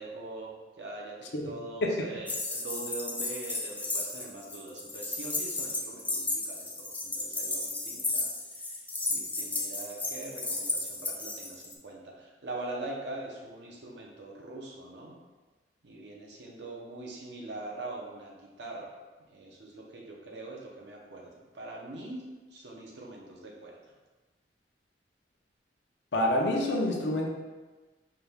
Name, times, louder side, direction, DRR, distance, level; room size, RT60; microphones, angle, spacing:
voice 1, 0.0-8.8 9.1-15.2 15.8-18.9 19.3-22.2 22.5-23.9, right 2 dB, 75° right, -1 dB, 0.8 m, -42 dB
sound 1, 2.3-11.7, left 2 dB, 10° left, 0.4 m, -34 dB
voice 2, 26.1-27.3, left 1 dB, 75° left, 0 dB, 0.6 m, -27 dB
4.7 x 2.3 x 3.4 m, 1.3 s
head